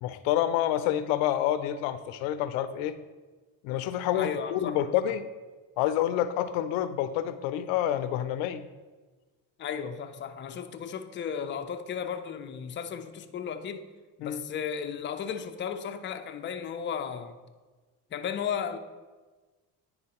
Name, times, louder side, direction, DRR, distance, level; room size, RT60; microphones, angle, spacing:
voice 1, 0.0-3.0 3.6-5.2 5.8-8.7 14.2-14.4, left 11 dB, 85° left, 0.6 m, -28 dB
voice 2, 4.1-4.9 9.6-13.9 14.2-17.4 18.1-18.8, left 7 dB, 25° left, 0.4 m, -34 dB
9.7 x 4.0 x 2.9 m
supercardioid pair, 95°, 46 cm